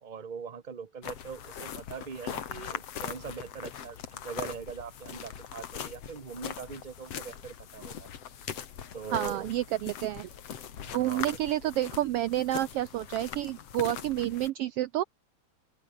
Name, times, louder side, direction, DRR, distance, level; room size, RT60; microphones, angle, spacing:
voice 1, 0.0-8.1 8.9-9.5 11.0-11.4, right 6 dB, 55° right, 0.5 m, -42 dB
sound 1, 1.0-14.5, left 9 dB, 60° left, 2.8 m, -41 dB
voice 2, 9.1-10.3 10.9-15.0, right 14 dB, 90° right, 1.3 m, -29 dB
open air
omnidirectional pair, 3.3 m